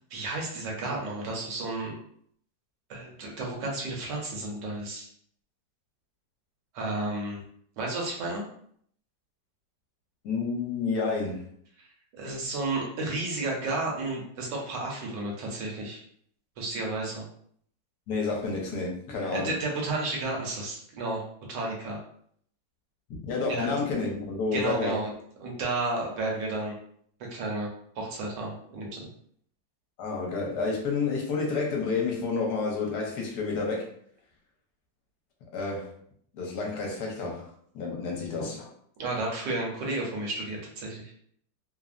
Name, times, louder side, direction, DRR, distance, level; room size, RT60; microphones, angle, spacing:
voice 1, 0.1-1.9 2.9-5.1 6.7-7.4 7.8-8.4 11.8-11.9 12.2-16.0 16.6-17.2 19.3-21.2 21.5-22.0 23.5-23.7 24.5-25.1 25.4-26.7 27.3-27.7 28.0-29.1 39.0-41.1, right 2 dB, 70° right, -1 dB, 1.3 m, -32 dB
voice 2, 10.2-11.4 18.1-19.5 23.2-24.9 30.0-33.9 35.5-35.9 36.3-37.5 37.7-38.7, left 4 dB, 65° left, -1 dB, 1.2 m, -30 dB
3.3 x 2.0 x 2.4 m, 0.64 s
omnidirectional pair, 2.0 m